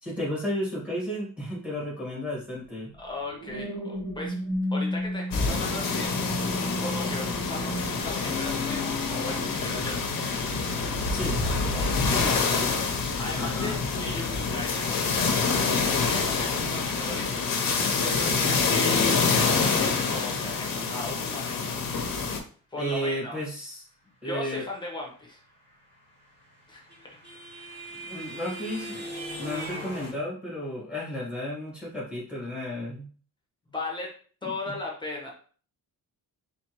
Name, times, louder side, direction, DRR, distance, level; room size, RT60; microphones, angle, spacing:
voice 1, 0.0-2.9 11.1-11.4 12.1-12.9 13.4-13.8 17.1-17.2 18.2-18.5 22.8-23.9 24.2-24.6 28.0-29.1 29.4-33.1 34.4-34.7, equal, 5° right, -7 dB, 1.7 m, -33 dB
voice 2, 3.0-4.4 4.7-6.1 6.8-10.0 11.3-12.2 13.2-17.4 17.7-21.8 22.7-23.4 24.2-25.4 26.7-27.1 33.7-34.1 34.4-35.3, left 2 dB, 10° left, -1 dB, 1.0 m, -37 dB
sound 1, 3.0-13.6 14.1-14.4, equal, 45° right, 1.5 m, -35 dB
sound 2, 5.3-22.4, left 4 dB, 65° left, 0.8 m, -27 dB
sound 3, 26.2-30.1, equal, 30° right, 2.2 m, -39 dB
3.7 x 3.5 x 3.0 m, 0.42 s
wide cardioid pair, 170°, 37 cm